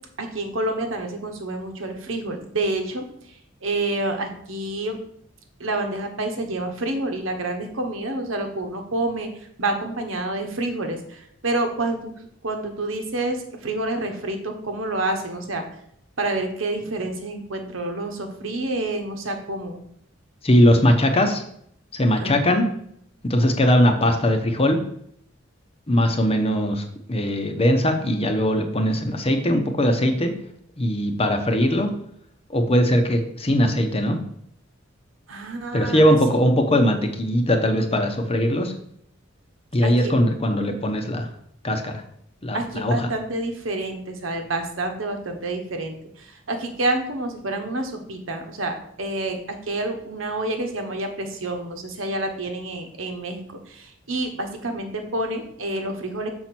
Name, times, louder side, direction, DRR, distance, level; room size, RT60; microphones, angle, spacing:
voice 1, 0.2-3.0 3.6-5.0 5.6-12.1 12.4-15.6 16.2-19.8 22.2-22.5 35.3-36.0 36.3-36.4 39.8-40.1 42.5-56.3, right 2 dB, 75° right, 5 dB, 1.2 m, -28 dB
voice 2, 20.4-21.4 21.9-22.7 23.3-24.8 25.9-30.3 30.8-31.9 32.5-34.2 35.7-38.7 39.7-41.3 41.6-41.9 42.4-42.9, equal, 30° left, 5 dB, 0.9 m, -20 dB
6.4 x 4.4 x 6.1 m, 0.69 s
head